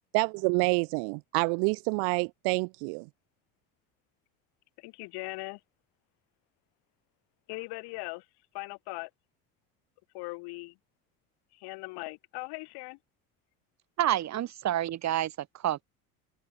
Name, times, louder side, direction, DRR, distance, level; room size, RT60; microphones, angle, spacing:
voice 1, 0.1-3.1, right 40 dB or more, 60° right, 1.7 m, -27 dB
voice 2, 4.8-5.6 7.5-8.3 8.5-9.1 10.1-10.8 11.5-13.0, left 27 dB, 60° left, 7.1 m, -39 dB
voice 3, 14.0-15.8, right 12 dB, 35° right, 1.5 m, -29 dB
hypercardioid pair, 70°, 44 cm